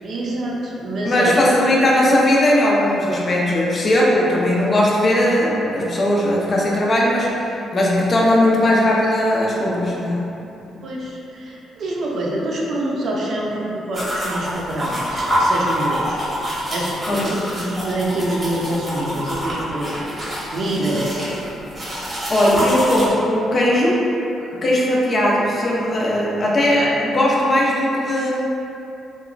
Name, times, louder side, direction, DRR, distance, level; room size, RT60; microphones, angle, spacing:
voice 1, 0.0-1.4 10.8-17.3 17.5-20.0 20.5-21.3 24.4-24.6, right 1 dB, 60° right, -3 dB, 0.5 m, -26 dB
voice 2, 1.1-10.3 17.1-17.3 22.3-24.0 24.5-28.3, left 1 dB, 40° left, -4 dB, 0.5 m, -18 dB
sound 1, 13.9-23.1, equal, 25° right, 0.8 m, -26 dB
2.9 x 2.1 x 2.4 m, 2.9 s
cardioid pair, 90°, 0 cm